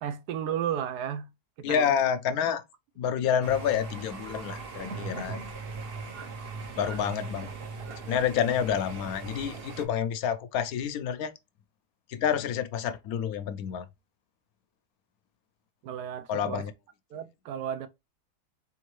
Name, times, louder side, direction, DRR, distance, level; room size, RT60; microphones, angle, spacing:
voice 1, 0.0-1.3 1.6-2.0 15.8-16.7 17.1-17.9, right 9 dB, 80° right, 1.1 m, -33 dB
voice 2, 1.6-2.6 3.0-5.4 6.8-7.5 8.1-11.3 12.1-13.8 16.3-16.7, left 8 dB, 70° left, 1.0 m, -28 dB
sound 1, 3.4-9.8, right 4 dB, 50° right, 0.8 m, -39 dB
3.8 x 3.6 x 3.0 m
omnidirectional pair, 1.7 m